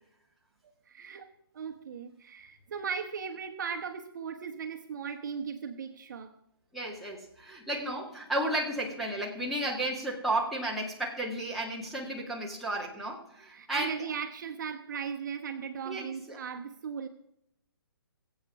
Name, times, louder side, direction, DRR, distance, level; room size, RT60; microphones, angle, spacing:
voice 1, 0.9-1.3 1.5-6.3 13.5-17.1, right 6 dB, 50° right, 6 dB, 1.1 m, -37 dB
voice 2, 6.7-14.0 15.9-16.4, right 1 dB, ahead, -6 dB, 1.9 m, -33 dB
21.5 x 8.1 x 4.8 m, 0.76 s
hypercardioid pair, 160°, 13 cm